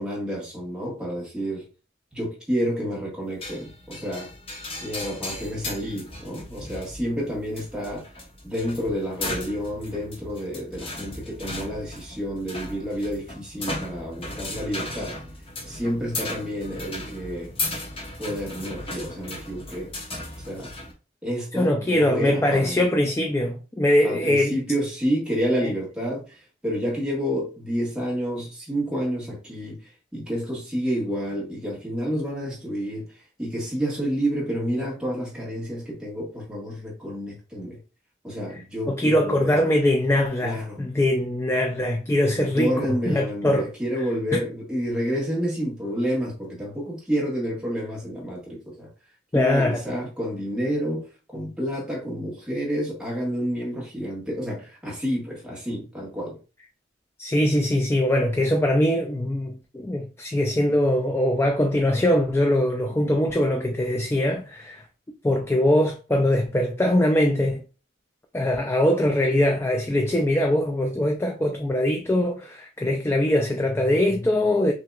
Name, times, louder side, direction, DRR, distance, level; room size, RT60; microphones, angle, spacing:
voice 1, 0.0-1.6 2.1-4.3 4.8-8.0 8.4-15.1 15.6-17.5 18.2-19.9 20.4-20.7 21.2-22.9 24.0-29.8 30.1-33.0 33.4-37.8 38.2-39.7 40.4-40.8 42.5-48.9 49.3-56.4, equal, 5° right, 1.6 m, -29 dB
sound 1, 3.4-20.9, left 2 dB, 30° left, 0.9 m, -36 dB
voice 2, 21.5-24.5 25.6-25.7 38.9-42.7 43.1-43.7 49.3-49.8 57.2-64.8 65.2-67.6 68.3-74.7, left 1 dB, 15° left, 0.3 m, -22 dB
5.7 x 2.8 x 2.4 m
head